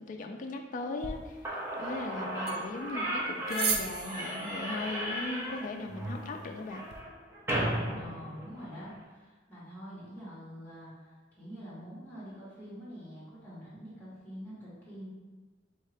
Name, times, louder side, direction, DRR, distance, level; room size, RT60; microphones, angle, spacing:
voice 1, 0.0-6.8, left 3 dB, 45° left, 3 dB, 0.3 m, -38 dB
sound 1, 1.0-7.0, right 5 dB, 55° right, 0.5 m, -39 dB
Slam / Squeak, 1.1-1.2 1.4-8.9, equal, 15° right, 0.6 m, -35 dB
voice 2, 8.0-15.1, equal, 10° left, -9 dB, 1.3 m, -46 dB
3.7 x 2.7 x 3.3 m, 1.3 s
head